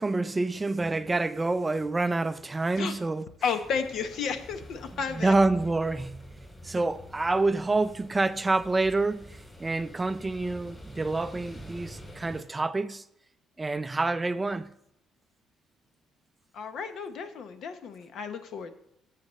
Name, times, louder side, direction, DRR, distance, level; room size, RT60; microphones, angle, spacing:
voice 1, 0.0-3.3 5.1-6.3 6.6-13.0 13.6-14.7, right 3 dB, 20° right, 0.4 m, -27 dB
voice 2, 3.4-5.4 16.5-18.7, left 6 dB, 65° left, 1.0 m, -32 dB
sound 1, 3.6-12.4, equal, 15° left, 3.1 m, -47 dB
13.0 x 7.6 x 3.1 m
cardioid pair, 105°, 0 cm